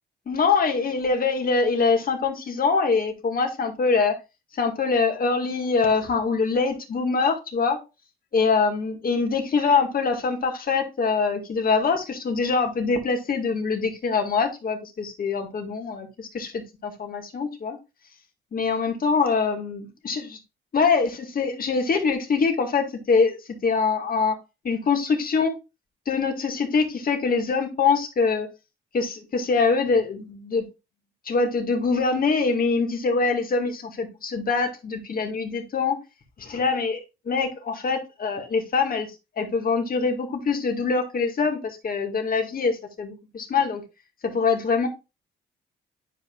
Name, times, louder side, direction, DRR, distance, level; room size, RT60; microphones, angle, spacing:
voice 1, 0.3-4.2 4.5-7.8 8.3-17.8 18.5-20.4 20.7-23.4 23.6-24.4 24.6-25.6 26.1-28.5 28.9-30.7 31.3-36.0 36.4-43.8 44.2-44.9, left 4 dB, 45° left, 4 dB, 2.0 m, -24 dB
9.8 x 5.1 x 2.4 m, 0.27 s
cardioid pair, 90°, 20 cm